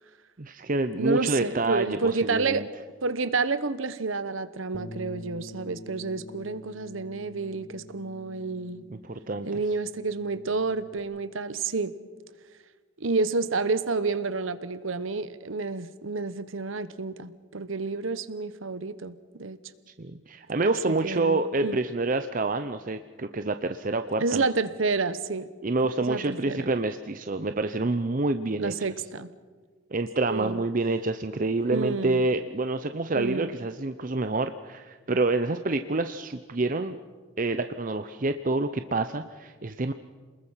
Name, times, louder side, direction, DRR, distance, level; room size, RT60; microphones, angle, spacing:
voice 1, 0.4-2.7 9.0-9.6 20.0-24.4 25.6-28.7 29.9-37.0 37.4-39.9, right 2 dB, 40° right, 9 dB, 0.7 m, -27 dB
voice 2, 1.0-2.7 3.0-8.8 9.5-11.9 13.0-19.6 20.6-21.8 24.2-25.5 26.0-26.7 28.6-29.3 30.3-30.6 31.7-32.2 33.1-33.5, right 4 dB, 80° right, 13 dB, 1.0 m, -29 dB
Bass guitar, 4.7-11.0, equal, 25° left, 1.4 m, -46 dB
28.0 x 21.0 x 5.7 m, 1.4 s
head